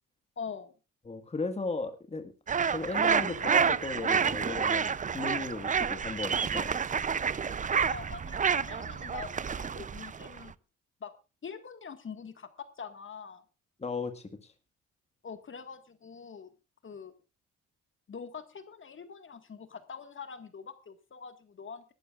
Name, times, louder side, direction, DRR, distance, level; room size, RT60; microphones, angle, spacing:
voice 1, 0.4-0.7 7.5-10.5 11.0-11.1 11.4-13.4 15.2-16.5 16.8-17.1 18.1-21.9, left 6 dB, 40° left, 9 dB, 1.8 m, -44 dB
voice 2, 1.0-2.3 2.7-6.9 13.8-14.5, left 3 dB, 20° left, 8 dB, 1.7 m, -36 dB
sound 1, 2.5-10.5, right 6 dB, 25° right, 0.5 m, -29 dB
19.5 x 13.0 x 2.4 m, 0.31 s
cardioid pair, 90°, 30 cm